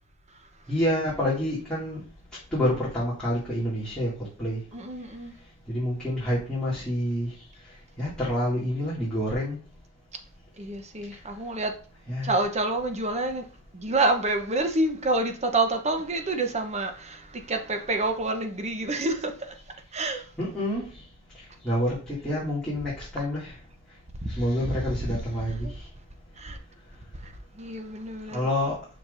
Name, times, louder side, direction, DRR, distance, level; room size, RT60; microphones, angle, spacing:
voice 1, 0.7-2.0 2.5-4.1 4.4-4.6 5.7-7.3 8.0-9.6 12.1-12.3 20.4-20.9 21.6-23.5 24.3-25.7 28.3-28.8, left 1 dB, 5° left, 2.3 m, -27 dB
voice 2, 4.7-5.3 10.6-11.7 12.2-13.5 13.7-19.5 19.9-20.3 24.2-24.3 24.6-24.8 25.1-25.7 26.4-26.6 27.2-28.4, right 2 dB, 30° right, 0.9 m, -28 dB
7.3 x 6.0 x 2.6 m
head